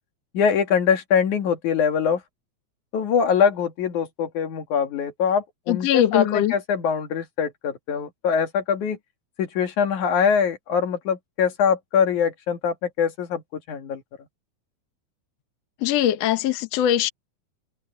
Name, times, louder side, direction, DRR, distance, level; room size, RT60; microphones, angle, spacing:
voice 1, 0.3-2.2 2.9-9.0 9.4-14.0, left 7 dB, 85° left, 3.5 m, -23 dB
voice 2, 5.7-6.5 15.8-17.1, left 11 dB, 65° left, 2.1 m, -21 dB
omnidirectional pair, 3.4 m